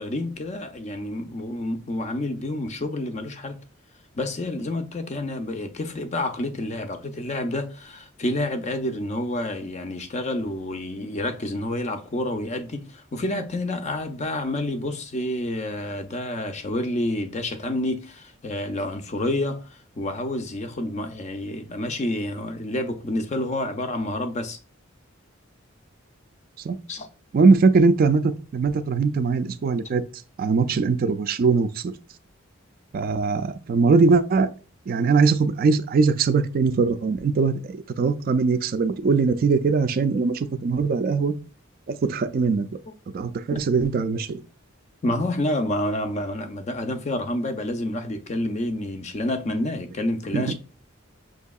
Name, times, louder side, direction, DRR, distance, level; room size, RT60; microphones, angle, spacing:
voice 1, 0.0-3.6 4.1-24.6 26.9-27.1 45.0-50.5, left 1 dB, 35° left, 0.4 m, -29 dB
voice 2, 27.3-30.0 30.4-31.9 32.9-34.5 34.9-41.3 41.9-42.7 43.1-44.4 50.3-50.5, right 4 dB, 45° right, 0.3 m, -21 dB
5.9 x 2.7 x 2.3 m
head